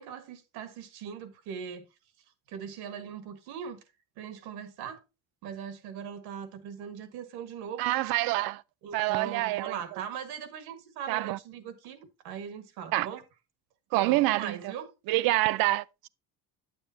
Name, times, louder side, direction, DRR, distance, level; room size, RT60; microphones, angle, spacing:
voice 1, 0.0-1.9 2.5-3.8 4.2-5.0 5.4-7.9 8.8-13.2 13.9-14.9, right 8 dB, 85° right, 1.6 m, -40 dB
voice 2, 7.8-8.6 8.9-9.8 11.1-11.4 12.9-13.1 13.9-14.7 15.1-16.1, right 18 dB, 70° right, 0.5 m, -27 dB
9.3 x 7.0 x 2.7 m
cardioid pair, 170°, 37 cm